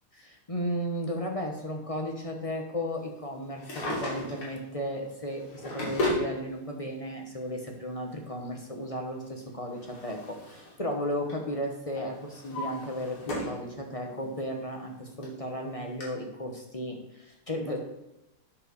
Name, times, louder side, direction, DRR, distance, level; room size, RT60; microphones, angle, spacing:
voice 1, 0.1-17.8, equal, 25° left, 2 dB, 0.8 m, -34 dB
Drawer open or close, 3.5-4.6 5.3-6.3 7.4-7.5 9.2-10.8 11.1-11.5 12.0-13.6 14.1-14.2 14.9-15.0 15.2-15.3 16.0-16.1, left 1 dB, 80° left, 4.1 m, -34 dB
8.9 x 5.5 x 6.5 m, 0.93 s
omnidirectional pair, 2.4 m